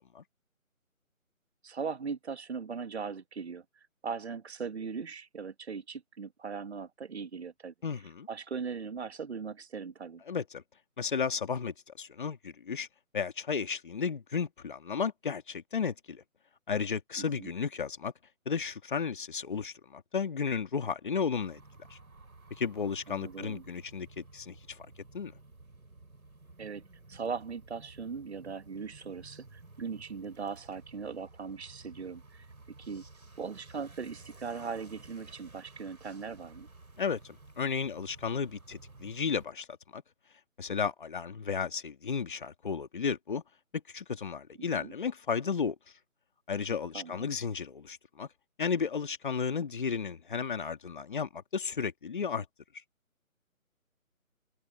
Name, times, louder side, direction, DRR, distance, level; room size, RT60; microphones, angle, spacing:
voice 1, 1.6-7.7 8.3-10.2 17.2-17.5 23.1-23.6 26.6-26.8 27.1-32.5 32.8-33.0 33.4-36.7 44.7-44.9 46.9-47.3, right 5 dB, 50° right, 1.7 m, -39 dB
voice 2, 7.8-8.3 10.3-10.6 11.0-12.9 13.1-16.2 16.7-18.1 18.5-21.6 21.9-22.0 22.6-24.9 25.1-25.3 37.0-40.0 40.6-43.4 43.9-45.8 46.5-48.3 48.6-52.5, left 6 dB, 35° left, 1.9 m, -33 dB
sound 1, 21.3-39.5, right 3 dB, 90° right, 7.3 m, -54 dB
figure-of-eight pair, 165°, 42 cm